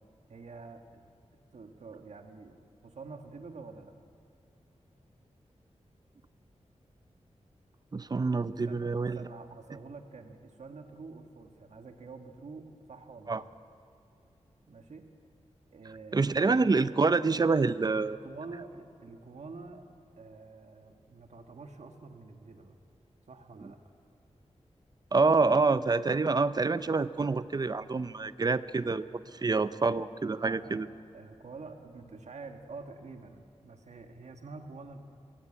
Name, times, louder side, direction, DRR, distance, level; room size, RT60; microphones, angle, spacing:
voice 1, 0.3-0.8 1.5-3.9 8.6-13.5 14.7-15.1 15.7-16.7 18.1-19.9 20.2-22.8 23.3-23.8 30.4-35.0, right 4 dB, 75° right, 5 dB, 1.5 m, -47 dB
voice 2, 7.9-9.2 13.3-13.4 16.1-18.2 25.1-29.0 29.3-30.9, right 4 dB, 35° right, 14 dB, 0.6 m, -27 dB
22.5 x 15.5 x 8.6 m, 2.5 s
wide cardioid pair, 120°, 12 cm